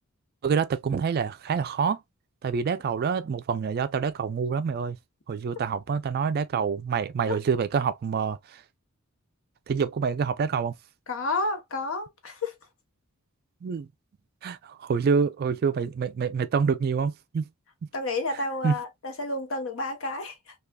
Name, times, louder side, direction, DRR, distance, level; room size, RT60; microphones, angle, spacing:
voice 1, 0.4-2.0 2.4-5.0 5.3-8.6 9.7-10.7 13.6-13.9 14.4-17.4 18.6-18.7, right 6 dB, 45° right, 0.3 m, -26 dB
voice 2, 11.1-12.5 17.9-20.5, left 2 dB, 65° left, 0.9 m, -31 dB
3.4 x 2.3 x 2.2 m
head